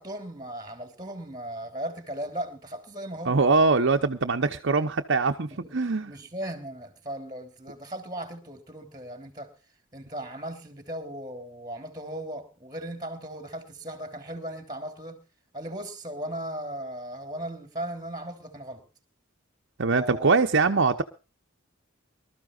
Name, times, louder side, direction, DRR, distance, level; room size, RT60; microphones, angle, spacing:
voice 1, 0.0-3.4 5.6-5.7 6.0-9.5 9.9-15.2 15.5-18.8 19.9-20.3, right 1 dB, 20° right, 3.4 m, -37 dB
voice 2, 3.2-6.1 19.8-21.0, right 4 dB, 60° right, 0.9 m, -23 dB
24.5 x 13.5 x 2.5 m
head